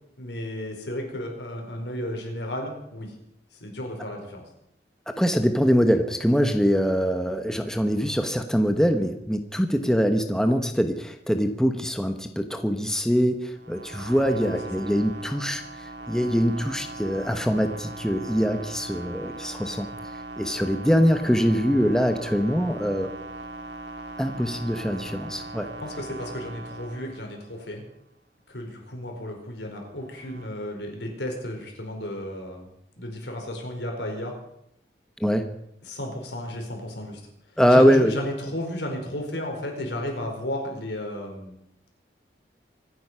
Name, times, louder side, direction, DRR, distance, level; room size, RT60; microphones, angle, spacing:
voice 1, 0.2-3.1 3.5-4.4 14.3-14.6 25.8-27.8 28.5-32.7 33.0-34.4 35.8-37.2 37.7-41.5, left 1 dB, 85° left, 2 dB, 4.7 m, -33 dB
voice 2, 5.2-19.9 20.4-23.1 24.2-25.7 35.2-35.5 37.6-38.1, equal, 5° left, 6 dB, 1.0 m, -23 dB
sound 1, 13.5-27.6 29.9-30.5, right 2 dB, 80° right, 2.4 m, -39 dB
25.5 x 9.4 x 5.7 m, 0.77 s
head